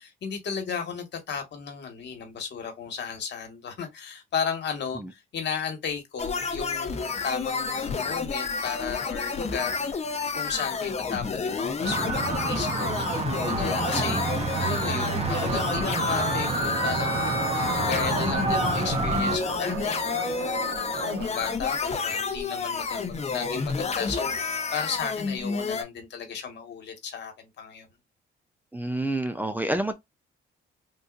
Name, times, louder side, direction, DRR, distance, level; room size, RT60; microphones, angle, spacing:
voice 1, 0.0-10.0 10.3-27.9, left 6 dB, 60° left, 1.5 m, -35 dB
sound 1, 6.2-25.8, left 5 dB, 35° left, 0.8 m, -30 dB
sound 2, 11.8-19.4, right 3 dB, 30° right, 0.8 m, -28 dB
voice 2, 13.9-14.2 28.7-29.9, right 1 dB, 10° right, 0.5 m, -29 dB
sound 3, 15.3-21.3, right 6 dB, 80° right, 0.9 m, -36 dB
3.7 x 2.7 x 2.5 m
cardioid pair, 90°, 20 cm